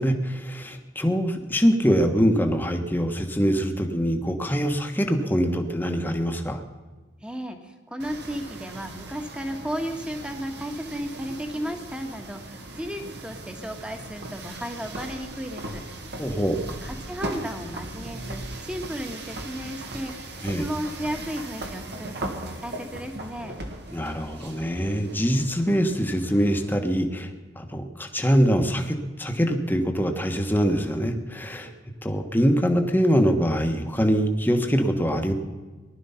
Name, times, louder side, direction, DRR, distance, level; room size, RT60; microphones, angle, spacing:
voice 1, 0.0-6.6 16.2-16.6 20.4-20.6 23.9-31.7 32.0-35.3, equal, 10° left, 5 dB, 1.3 m, -24 dB
voice 2, 7.2-15.8 16.8-20.1 20.6-23.5, equal, 5° right, 5 dB, 1.5 m, -34 dB
sound 1, 8.0-26.8, right 1 dB, 60° right, 1.7 m, -38 dB
19.5 x 12.0 x 5.8 m, 1.3 s
head